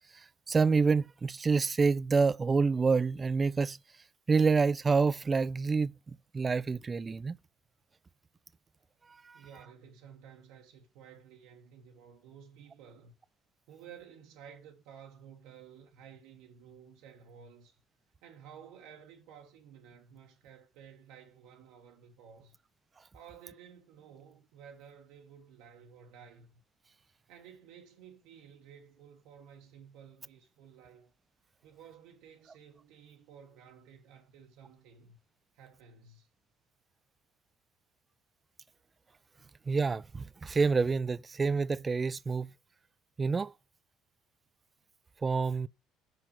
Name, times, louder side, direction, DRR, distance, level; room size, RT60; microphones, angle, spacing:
voice 1, 0.1-3.8 4.3-5.9 6.3-7.4 9.2-9.4 39.7-42.5 43.2-43.5 45.2-45.7, right 4 dB, 25° right, 0.4 m, -27 dB
voice 2, 9.3-13.1 13.7-17.8 18.2-22.5 23.1-26.5 27.3-31.1 31.6-35.2 35.5-36.3, right 7 dB, 60° right, 1.4 m, -54 dB
6.1 x 5.9 x 5.6 m
figure-of-eight pair, 55°, 0 cm